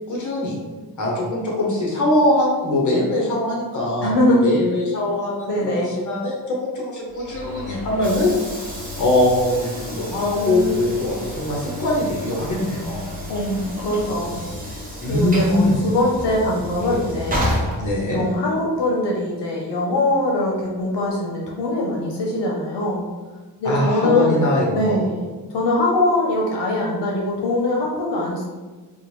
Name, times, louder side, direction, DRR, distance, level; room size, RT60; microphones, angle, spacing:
voice 1, 0.1-0.6 1.0-8.3 9.0-13.0 15.0-15.7 17.8-18.2 23.6-25.0, left 1 dB, 45° left, -3 dB, 0.9 m, -22 dB
voice 2, 4.0-4.5 5.5-5.9 10.3-10.8 13.3-14.8 15.1-17.4 18.1-23.0 23.6-24.4 24.7-25.2 25.5-28.4, left 1 dB, 85° left, -2 dB, 0.7 m, -22 dB
Train / Sliding door, 7.1-18.5, left 1 dB, 20° right, 0.6 m, -31 dB
3.6 x 2.1 x 3.0 m, 1.3 s
wide cardioid pair, 170°, 41 cm